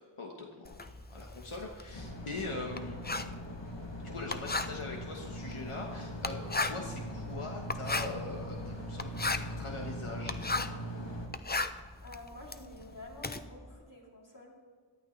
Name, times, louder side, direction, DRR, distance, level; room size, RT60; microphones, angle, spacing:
voice 1, 0.2-0.8 1.1-3.0 4.0-6.4 6.6-10.4, left 2 dB, 80° left, 0 dB, 1.4 m, -42 dB
Writing, 0.6-10.9 11.2-13.4, left 3 dB, 20° left, 0.5 m, -36 dB
Insect, 0.8-13.8, equal, 5° right, 2.6 m, -53 dB
sound 1, 1.9-11.3, equal, 60° left, 2.0 m, -41 dB
voice 2, 12.0-14.5, left 2 dB, 40° left, -3 dB, 3.1 m, -49 dB
18.0 x 11.5 x 3.3 m, 1.6 s
wide cardioid pair, 50°, 50 cm